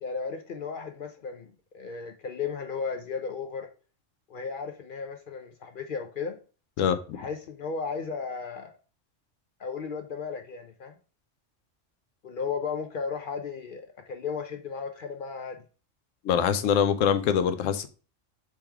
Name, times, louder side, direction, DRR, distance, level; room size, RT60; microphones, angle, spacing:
voice 1, 0.0-3.7 4.3-6.4 7.1-8.7 9.6-11.0 12.2-15.6, left 5 dB, 55° left, 0.6 m, -35 dB
voice 2, 6.8-7.2 16.2-17.9, left 8 dB, 90° left, 1.0 m, -24 dB
3.6 x 3.1 x 4.4 m
omnidirectional pair, 1.3 m